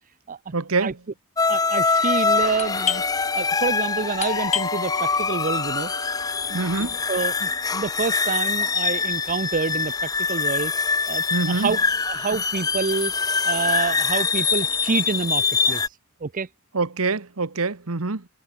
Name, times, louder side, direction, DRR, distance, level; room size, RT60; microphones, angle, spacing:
voice 1, 0.5-1.0 6.5-7.0 11.3-11.7 16.7-18.3, right 3 dB, 80° right, 1.3 m, -25 dB
sound 1, 1.4-15.9, left 4 dB, 15° left, 0.5 m, -24 dB
voice 2, 1.5-5.9 6.5-6.6 7.1-10.7 11.1-11.8 12.0-13.1 13.4-15.8 16.2-16.5, right 4 dB, 40° right, 0.6 m, -27 dB
Doorbell, 2.5-11.9 12.2-12.3 12.9-13.3 13.6-15.0, left 6 dB, 35° left, 1.3 m, -33 dB
head